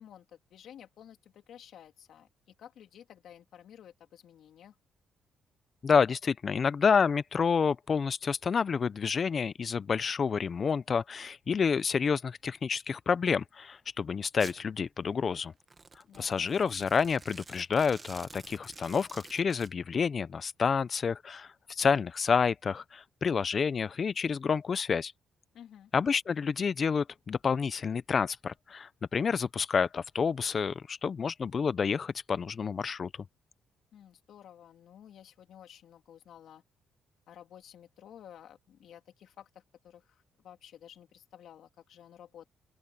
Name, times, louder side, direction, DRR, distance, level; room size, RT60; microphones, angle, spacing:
voice 1, 0.0-4.7 16.1-16.5 25.5-25.9 33.9-36.6 37.3-42.5, left 10 dB, 70° left, 3.4 m, -53 dB
voice 2, 5.8-15.5 16.2-21.5 21.8-25.1 25.9-33.1, left 6 dB, 45° left, 0.7 m, -29 dB
Domestic sounds home sounds, 14.4-14.6 15.6-19.7, right 4 dB, 30° right, 1.5 m, -50 dB
open air
cardioid pair, 90°, 0 cm